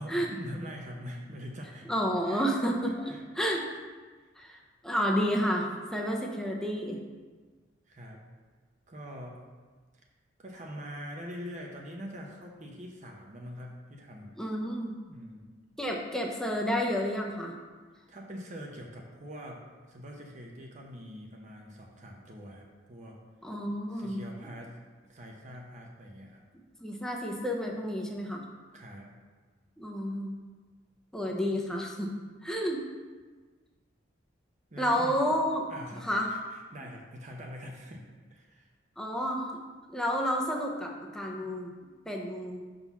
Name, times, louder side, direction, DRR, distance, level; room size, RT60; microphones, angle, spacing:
voice 1, 0.0-1.9 2.2-2.5 3.0-3.2 4.2-4.3 7.9-8.2 8.9-9.4 10.4-14.3 15.1-15.4 18.1-23.2 23.9-26.4 28.7-29.1 34.7-35.3 35.7-38.1 38.3-38.7, equal, 40° right, 0 dB, 0.8 m, -44 dB
voice 2, 1.9-3.6 4.4-7.0 14.4-15.0 15.8-17.5 23.4-24.2 26.8-28.4 29.8-30.4 31.1-32.1 32.4-32.8 34.8-35.6 36.0-36.3 39.0-39.5 39.9-41.7 42.1-42.6, equal, 5° left, 0 dB, 0.7 m, -30 dB
5.6 x 3.8 x 6.0 m, 1.4 s
head